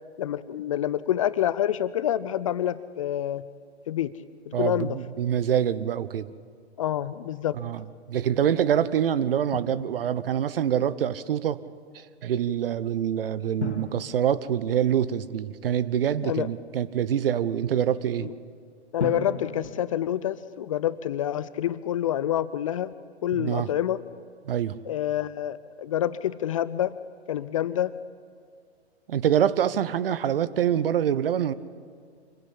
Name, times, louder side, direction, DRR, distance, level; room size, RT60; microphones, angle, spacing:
voice 1, 0.2-3.4 3.9-4.1 4.5-5.0 6.8-7.6 16.2-16.5 18.2-18.3 18.9-22.9 23.2-24.0 24.9-27.0 27.3-27.9, left 11 dB, 30° left, 16 dB, 0.5 m, -27 dB
voice 2, 4.5-6.3 7.5-11.6 11.9-18.3 23.3-23.7 24.4-24.8 29.1-31.5, right 9 dB, 55° right, 16 dB, 1.0 m, -25 dB
Drum, 9.5-10.6 13.6-15.4 19.0-21.0, left 2 dB, 85° left, 2.5 m, -37 dB
25.5 x 16.0 x 8.4 m, 2.1 s
hypercardioid pair, 130°, 33 cm